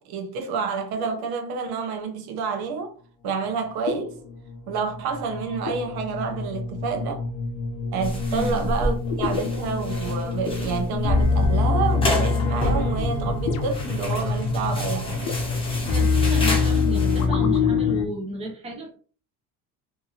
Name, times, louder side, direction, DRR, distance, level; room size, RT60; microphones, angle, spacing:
voice 1, 0.0-2.9 3.2-4.2 4.7-7.3 7.9-15.3, right 5 dB, 75° right, 0.7 m, -29 dB
sound 1, 1.0-1.2 3.9-18.1, left 4 dB, 50° left, 0.5 m, -25 dB
sound 2, 8.0-17.3, left 1 dB, 15° left, 0.9 m, -30 dB
voice 2, 15.8-19.0, right 1 dB, 15° right, 0.6 m, -33 dB
2.7 x 2.5 x 2.7 m
cardioid pair, 145°, 38 cm